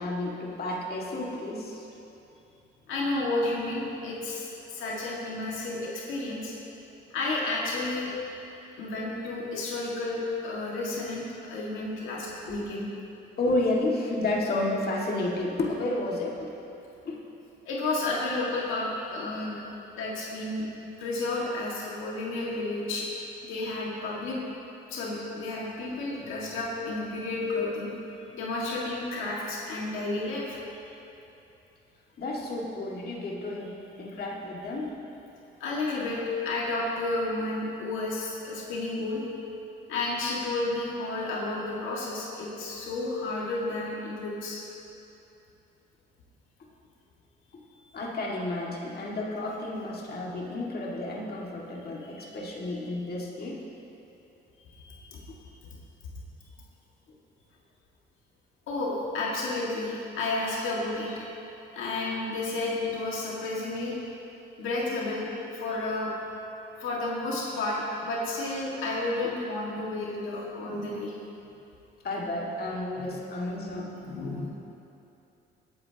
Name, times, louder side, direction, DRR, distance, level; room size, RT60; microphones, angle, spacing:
voice 1, 0.0-1.9 13.4-16.5 17.0-17.2 32.2-35.0 47.9-53.6 55.3-55.4 72.0-73.9, left 2 dB, 50° left, -3 dB, 2.0 m, -31 dB
voice 2, 2.9-6.5 7.1-8.1 8.8-12.9 17.7-19.6 19.9-20.6 21.0-23.1 23.4-24.4 24.9-27.9 28.3-30.6 35.6-39.2 39.9-44.6 47.8-47.9 52.0-52.4 54.7-55.5 58.7-61.2 61.7-63.9 64.6-66.1 66.8-71.1 73.0-73.1 73.5-74.5, left 2 dB, 85° left, -4 dB, 1.9 m, -31 dB
18.5 x 9.4 x 2.9 m, 2.9 s
cardioid pair, 90°, 20 cm